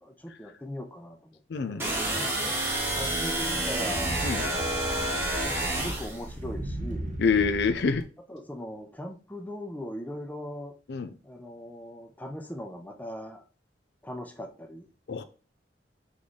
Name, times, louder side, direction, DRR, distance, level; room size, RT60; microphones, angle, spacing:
voice 1, 0.0-1.9 2.9-7.2 8.3-10.7 11.2-13.5 14.0-14.9, left 1 dB, 10° left, 0.6 m, -40 dB
voice 2, 1.5-1.9 4.2-4.4 7.2-8.1 10.9-11.1 15.1-15.2, left 5 dB, 65° left, 0.4 m, -26 dB
sound 1, 1.8-6.2, right 1 dB, 15° right, 1.0 m, -29 dB
sound 2, 2.7-8.0, right 1 dB, 45° right, 0.6 m, -37 dB
3.6 x 3.2 x 4.1 m
head